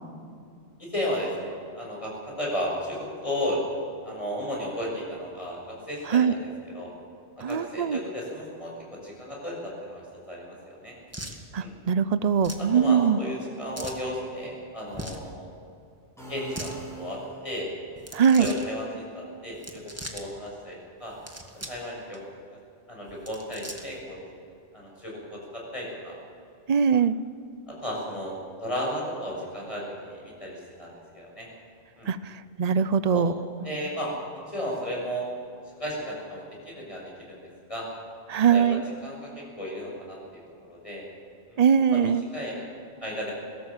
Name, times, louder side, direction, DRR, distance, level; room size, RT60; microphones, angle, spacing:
voice 1, 0.8-3.6 4.0-6.9 7.4-10.9 11.6-11.7 12.6-15.5 16.3-17.7 18.4-21.1 21.7-22.2 22.9-24.2 24.7-26.2 27.0-27.1 27.7-28.3 28.6-31.5 32.0-32.1 33.1-33.2 33.6-34.1 34.5-35.3 35.8-37.4 37.7-37.9 38.5-40.4 40.7-41.0 41.5-42.6 43.0-43.3, equal, 30° left, -3 dB, 6.8 m, -34 dB
voice 2, 7.4-8.0 11.5-13.2 18.1-18.5 26.7-27.2 32.1-32.2 32.6-33.3 38.3-38.8 41.6-42.2, right 7 dB, 40° right, 14 dB, 0.7 m, -21 dB
sound 1, 11.1-11.4 12.4-12.7 13.7-14.0 14.9-15.3 16.4-16.8 18.0-18.7 19.5-20.2 21.1-21.8 22.1-22.2 23.1-24.0, equal, 15° right, 1.9 m, -39 dB
sound 2, 16.2-17.7, right 3 dB, ahead, 6.5 m, -42 dB
21.5 x 17.5 x 7.4 m, 2.5 s
omnidirectional pair, 1.2 m